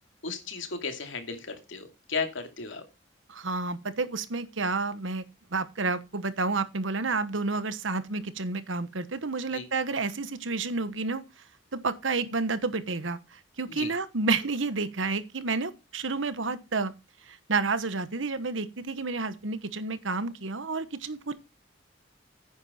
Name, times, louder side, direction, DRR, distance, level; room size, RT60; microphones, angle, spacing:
voice 1, 0.2-2.8 9.5-9.7 13.7-13.9, left 4 dB, 85° left, 2.5 m, -35 dB
voice 2, 3.3-5.2 5.5-11.2 11.7-16.9 17.3-21.3, right 3 dB, 85° right, 1.2 m, -30 dB
9.8 x 9.6 x 4.3 m
head